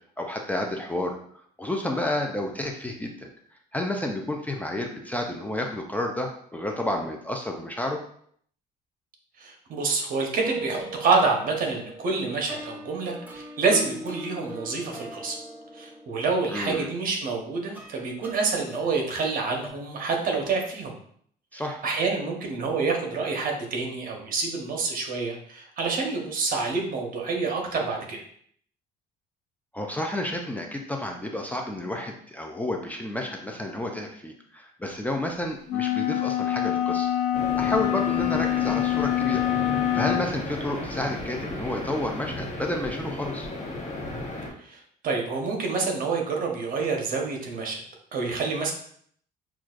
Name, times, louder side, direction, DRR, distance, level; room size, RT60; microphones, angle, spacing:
voice 1, 0.2-1.2 1.6-3.3 3.7-8.0 16.5-16.9 21.5-21.8 29.7-37.1 37.6-39.4 39.9-43.5, left 1 dB, 10° left, 2 dB, 0.4 m, -30 dB
voice 2, 9.4-15.4 15.7-20.9 21.5-28.2 44.6-47.8 48.1-48.7, right 4 dB, 55° right, 1 dB, 0.9 m, -27 dB
sound 1, 10.4-19.7, equal, 10° right, 0.8 m, -40 dB
sound 2, 35.7-40.3, left 12 dB, 75° left, 0.6 m, -25 dB
sound 3, 37.3-44.5, left 1 dB, 40° left, 1.1 m, -34 dB
6.0 x 2.4 x 2.4 m, 0.62 s
cardioid pair, 110°, 17 cm